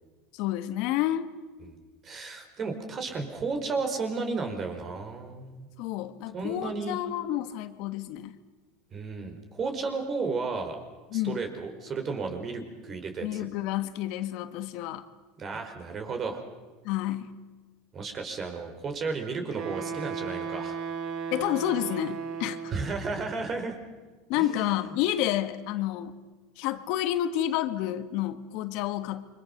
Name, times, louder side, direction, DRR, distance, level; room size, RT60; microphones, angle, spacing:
voice 1, 0.3-1.3 5.8-8.4 11.1-11.4 13.2-15.1 16.8-17.3 21.3-22.6 24.3-26.1 26.6-29.3, left 13 dB, 65° left, 10 dB, 1.6 m, -29 dB
voice 2, 2.0-5.7 6.3-7.0 8.9-10.8 11.1-13.5 15.4-16.4 17.9-20.8 22.7-23.8 24.4-24.9, right 4 dB, 35° right, 5 dB, 4.9 m, -33 dB
Wind instrument woodwind instrument, 19.5-23.0, right 6 dB, 55° right, 2.7 m, -35 dB
28.5 x 23.5 x 6.7 m, 1.3 s
supercardioid pair, 100°, 0 cm